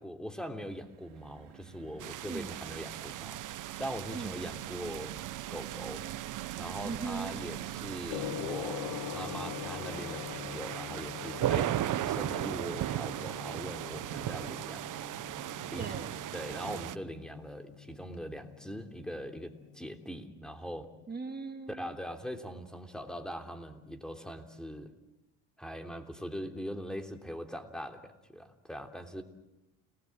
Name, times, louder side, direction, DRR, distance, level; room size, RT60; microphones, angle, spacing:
voice 1, 0.0-3.4 3.8-5.1 5.5-6.0 6.6-14.8 15.7-20.9 21.7-24.9 25.6-29.2, equal, ahead, 5 dB, 3.2 m, -41 dB
sound 1, 0.5-16.8 17.2-17.4 17.6-17.9, right 15 dB, 90° right, 1.2 m, -47 dB
sound 2, 2.0-17.0, right 13 dB, 50° right, 0.9 m, -37 dB
voice 2, 2.2-2.6 4.1-4.4 6.8-7.4 15.8-16.2 21.1-22.0, right 4 dB, 25° right, 5 dB, 2.2 m, -39 dB
Gong, 8.1-20.1, left 11 dB, 70° left, 1.5 m, -44 dB
30.0 x 19.5 x 7.8 m, 0.97 s
supercardioid pair, 80°, 39 cm